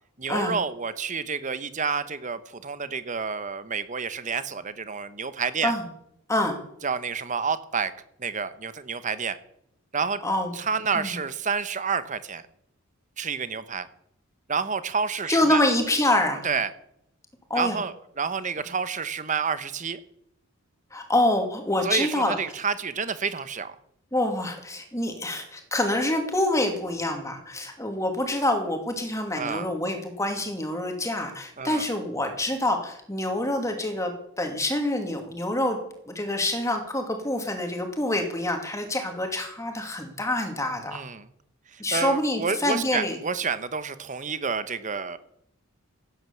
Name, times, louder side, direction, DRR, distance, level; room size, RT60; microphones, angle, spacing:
voice 1, 0.2-5.7 6.8-7.9 8.2-9.4 9.9-10.2 10.5-12.4 13.2-13.9 14.5-15.6 16.4-16.7 17.5-20.0 21.8-23.7 29.4-29.7 31.6-31.9 40.9-41.3 41.7-45.2, right 5 dB, 35° right, 13 dB, 1.0 m, -29 dB
voice 2, 6.3-6.6 10.2-10.5 10.9-11.2 15.3-16.5 17.5-17.8 20.9-22.4 24.1-35.8 36.1-41.0 41.8-43.2, left 1 dB, 15° left, 4 dB, 2.4 m, -26 dB
16.0 x 9.5 x 7.1 m, 0.75 s
head